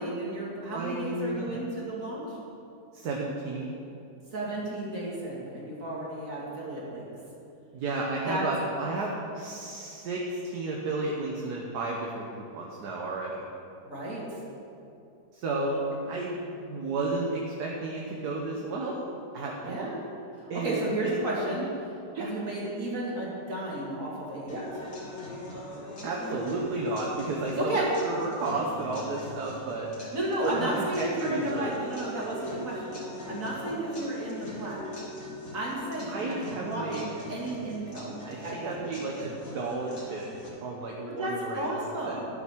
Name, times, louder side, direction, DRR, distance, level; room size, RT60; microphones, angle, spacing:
voice 1, 0.0-2.4 4.3-7.1 8.3-8.5 13.8-14.4 15.7-15.8 19.6-20.0 20.5-21.7 22.1-24.8 27.5-27.9 30.0-33.0 33.3-34.9 35.5-38.7 41.1-42.3, right 1 dB, 50° right, -5 dB, 2.8 m, -33 dB
voice 2, 0.7-1.6 2.9-3.7 7.7-13.4 15.3-19.0 19.3-20.0 20.5-21.1 21.5-21.7 22.2-22.3 26.0-29.9 30.4-31.7 36.1-37.1 38.2-40.2 40.6-42.2, right 2 dB, 70° right, -2 dB, 1.5 m, -32 dB
sound 1, 24.5-40.5, left 1 dB, 65° left, 2.6 m, -42 dB
12.0 x 6.8 x 6.1 m, 2.8 s
omnidirectional pair, 1.8 m